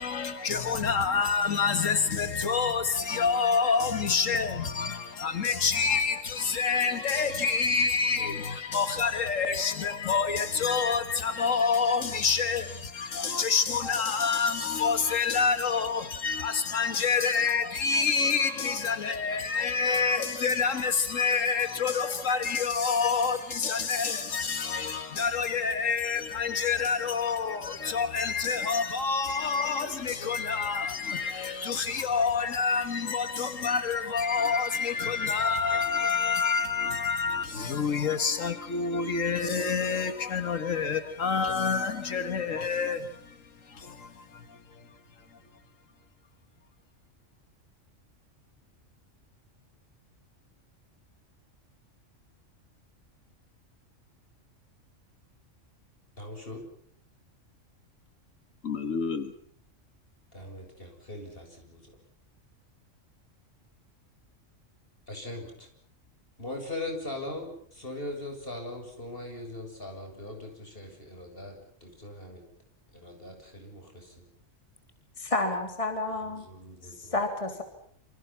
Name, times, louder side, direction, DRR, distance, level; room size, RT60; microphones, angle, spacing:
voice 1, 0.0-43.1 43.8-44.1 58.6-59.3, left 5 dB, 85° left, 1.9 m, -27 dB
voice 2, 56.2-56.6 60.3-61.9 65.1-65.7 66.4-72.4 72.9-74.2 76.2-77.2, left 2 dB, 45° left, 7.6 m, -40 dB
voice 3, 75.2-76.5 76.8-77.6, left 2 dB, 25° left, 3.3 m, -30 dB
28.0 x 27.0 x 5.8 m
omnidirectional pair, 1.3 m